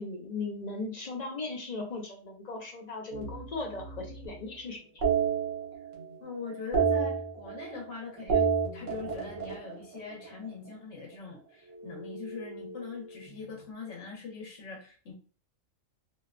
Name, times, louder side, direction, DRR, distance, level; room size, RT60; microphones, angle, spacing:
voice 1, 0.0-5.0, left 3 dB, 50° left, 1 dB, 0.5 m, -38 dB
sound 1, 3.1-4.4 5.0-6.2 6.4-7.9 8.2-10.5 11.7-13.5, right 6 dB, 70° right, 1.1 m, -31 dB
voice 2, 6.2-15.1, left 4 dB, 70° left, -2 dB, 1.1 m, -42 dB
2.7 x 2.1 x 2.4 m, 0.38 s
omnidirectional pair, 1.3 m